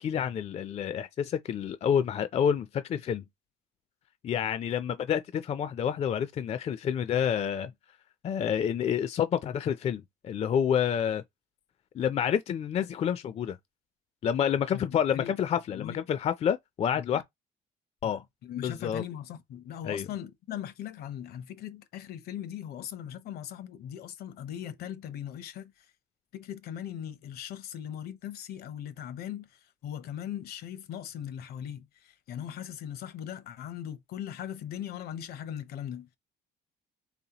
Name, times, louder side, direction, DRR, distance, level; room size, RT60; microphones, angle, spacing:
voice 1, 0.0-3.2 4.2-7.7 8.2-11.2 11.9-13.6 14.2-17.2 18.0-18.2 18.6-19.0 19.8-20.1, left 8 dB, 40° left, 0.4 m, -28 dB
voice 2, 15.7-16.0 17.0-17.2 18.0-25.9 26.3-36.2, left 10 dB, 70° left, 0.7 m, -39 dB
4.1 x 3.4 x 2.9 m
cardioid pair, 110°, 17 cm